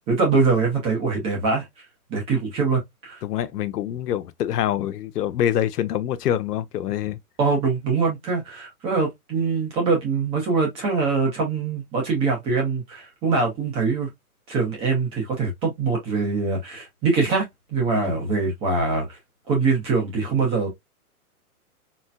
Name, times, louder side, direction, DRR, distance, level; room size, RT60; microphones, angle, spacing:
voice 1, 0.1-1.6 2.1-3.2 7.4-14.1 14.5-17.4 17.7-19.2 19.5-20.7, right 4 dB, 15° right, 0.7 m, -23 dB
voice 2, 3.2-7.2 17.9-18.3, left 11 dB, 85° left, 0.6 m, -25 dB
4.2 x 2.1 x 2.2 m
hypercardioid pair, 155°, 46 cm